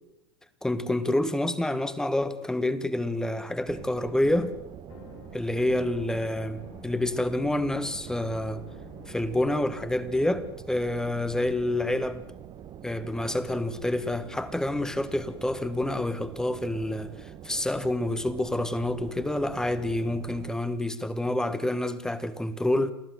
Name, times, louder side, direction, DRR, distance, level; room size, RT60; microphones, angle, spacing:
voice 1, 0.6-4.5 5.3-8.6 9.1-12.2 12.8-22.9, left 1 dB, 5° left, 1.5 m, -28 dB
sound 1, 3.6-20.5, right 9 dB, 35° right, 1.4 m, -45 dB
sound 2, 4.9-10.5, left 10 dB, 75° left, 3.1 m, -51 dB
28.0 x 15.0 x 7.9 m
supercardioid pair, 125°, 13 cm